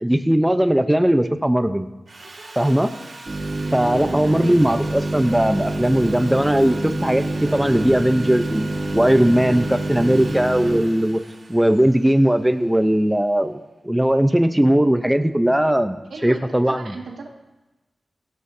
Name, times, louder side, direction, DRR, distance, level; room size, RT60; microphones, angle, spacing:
voice 1, 0.0-1.9 2.6-2.9 3.7-8.7 8.9-11.2 11.5-17.0, right 1 dB, 10° right, 8 dB, 0.7 m, -19 dB
Sawing, 2.1-13.1, right 3 dB, 55° right, 2.5 m, -40 dB
sound 1, 3.3-10.8, right 1 dB, 40° right, 2.9 m, -27 dB
voice 2, 4.2-4.8 16.1-17.3, right 3 dB, 85° right, 0 dB, 2.0 m, -36 dB
17.5 x 14.0 x 2.8 m, 1.1 s
cardioid pair, 45°, 0 cm